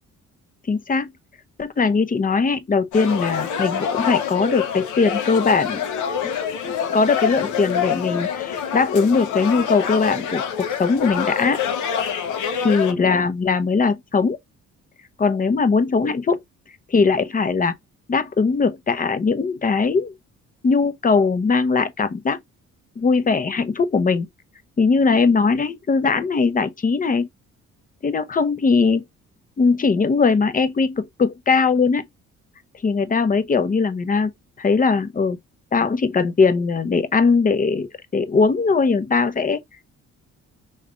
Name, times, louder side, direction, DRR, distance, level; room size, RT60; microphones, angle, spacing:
voice 1, 0.7-1.1 1.6-5.8 6.2-6.3 6.9-11.6 12.6-14.4 15.2-16.4 16.9-17.7 18.1-20.1 20.6-22.4 23.0-24.3 24.8-27.3 28.0-29.0 29.6-32.1 32.8-34.3 34.6-35.4 35.7-39.6, left 4 dB, 30° left, 0.7 m, -20 dB
sound 1, 2.9-12.9, left 8 dB, 80° left, 0.9 m, -26 dB
4.9 x 3.2 x 2.5 m
cardioid pair, 90°, 30 cm